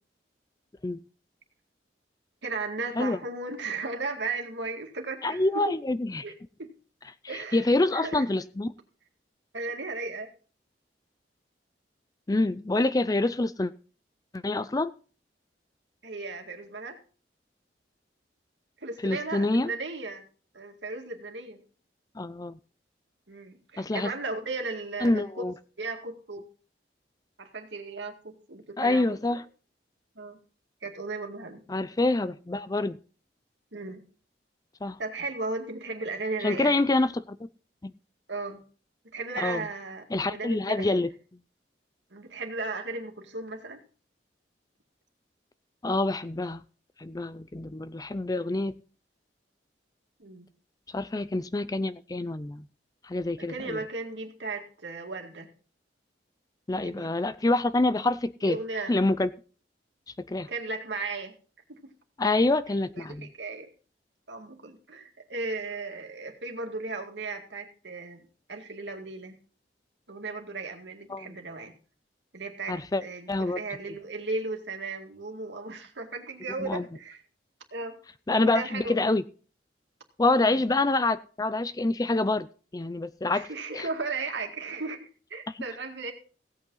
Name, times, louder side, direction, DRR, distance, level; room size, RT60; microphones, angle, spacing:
voice 1, 2.4-5.8 6.2-6.7 7.3-8.2 9.5-10.3 16.0-17.0 18.8-20.2 20.5-21.6 23.3-25.4 25.8-26.4 27.4-29.4 30.2-30.4 30.8-31.6 33.7-34.0 35.0-36.7 38.3-38.7 39.1-41.0 42.1-43.8 50.2-50.5 53.5-55.5 56.8-57.1 58.4-59.0 60.5-61.3 61.7-61.8 63.0-63.7 64.3-69.4 70.1-71.7 72.3-77.2 77.7-78.0 78.4-79.1 80.4-80.6 83.3-86.1, right 3 dB, 80° right, 4 dB, 2.1 m, -36 dB
voice 2, 5.2-6.2 7.5-8.7 12.3-13.7 14.3-14.9 19.0-19.7 22.2-22.6 23.8-24.1 25.0-25.5 28.8-29.4 31.7-33.0 34.8-35.0 36.4-37.4 37.8-37.9 39.4-39.6 40.1-41.1 45.8-46.6 47.0-48.8 50.9-52.6 53.1-53.8 56.7-58.6 58.9-59.3 60.3-60.5 62.2-63.3 71.1-71.3 72.7-73.0 73.3-73.6 76.6-76.8 78.3-79.2 80.2-82.5 82.7-83.5 83.7-83.9, left 2 dB, 20° left, 15 dB, 0.5 m, -26 dB
16.0 x 8.5 x 3.9 m, 0.38 s
head